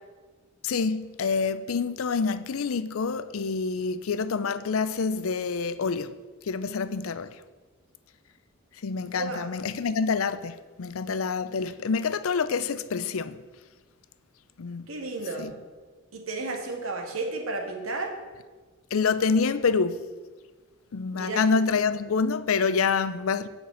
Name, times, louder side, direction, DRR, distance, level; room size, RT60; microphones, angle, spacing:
voice 1, 0.6-6.1 6.5-7.3 8.8-13.4 14.6-14.9 15.4-15.5 18.9-20.0 20.9-23.5, left 5 dB, 80° left, 0.5 m, -27 dB
voice 2, 14.9-15.5 16.1-18.1 21.1-21.4, right 3 dB, 75° right, 1.8 m, -32 dB
7.9 x 5.9 x 7.9 m
head